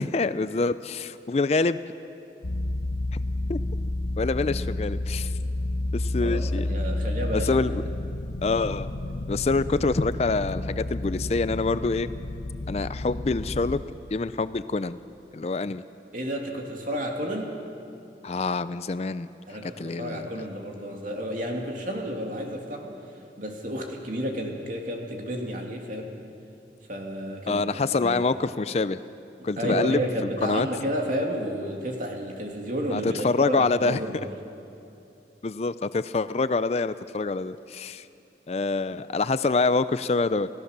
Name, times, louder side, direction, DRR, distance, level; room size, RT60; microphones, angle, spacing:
voice 1, 0.0-1.8 3.5-3.6 4.2-5.3 5.9-6.8 7.3-7.8 8.4-8.9 9.3-12.1 12.7-13.8 14.1-15.0 15.3-15.8 18.2-19.3 19.6-20.5 27.5-29.0 29.4-30.0 30.4-30.7 32.9-34.0 35.4-38.1 38.5-40.5, left 3 dB, 35° left, 14 dB, 0.4 m, -26 dB
sound 1, 2.4-13.8, left 1 dB, 75° left, 1.1 m, -30 dB
voice 2, 6.2-7.6 16.1-17.5 19.5-23.0 23.4-26.1 26.9-27.6 28.0-28.2 29.4-34.3, equal, 45° right, 1 dB, 2.7 m, -31 dB
29.5 x 16.0 x 6.7 m, 2.7 s
head